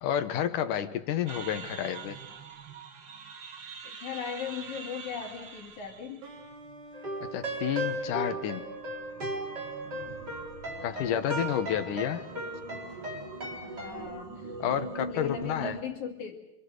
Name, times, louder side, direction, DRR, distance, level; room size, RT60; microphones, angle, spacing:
voice 1, 0.0-2.2 7.2-8.7 10.8-12.3 14.6-15.8, left 10 dB, 70° left, 9 dB, 2.2 m, -30 dB
sound 1, 1.3-15.8, right 4 dB, 55° right, 1.3 m, -44 dB
voice 2, 3.8-6.2 10.9-11.2 13.6-16.4, left 7 dB, 50° left, 2 dB, 3.5 m, -39 dB
sound 2, 6.2-11.7, right 3 dB, 90° right, 4.8 m, -51 dB
sound 3, 6.9-13.9, right 1 dB, 25° right, 4.0 m, -36 dB
26.5 x 26.0 x 6.5 m, 0.88 s
omnidirectional pair, 4.6 m